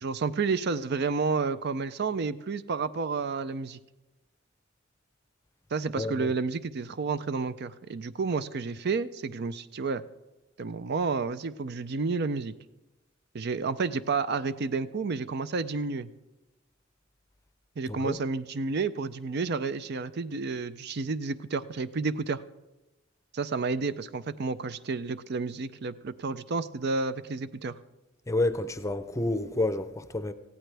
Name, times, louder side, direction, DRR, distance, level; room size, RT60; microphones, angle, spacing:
voice 1, 0.0-3.8 5.7-10.0 10.6-12.5 13.3-16.1 17.8-22.4 23.3-27.7, right 4 dB, 55° right, 0.5 m, -30 dB
voice 2, 6.0-6.3 17.9-18.2 28.3-30.3, left 2 dB, 15° left, 0.6 m, -29 dB
18.0 x 15.5 x 3.4 m
head